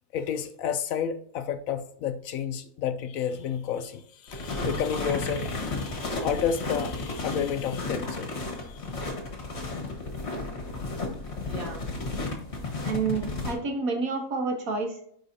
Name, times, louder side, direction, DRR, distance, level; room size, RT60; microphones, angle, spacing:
voice 1, 0.1-9.0, left 8 dB, 70° left, 9 dB, 0.9 m, -31 dB
sound 1, 4.3-13.5, left 3 dB, 45° left, 1.6 m, -33 dB
voice 2, 11.4-11.8 12.8-15.0, right 4 dB, 65° right, 3 dB, 1.7 m, -29 dB
9.6 x 3.9 x 2.7 m, 0.65 s
omnidirectional pair, 1.6 m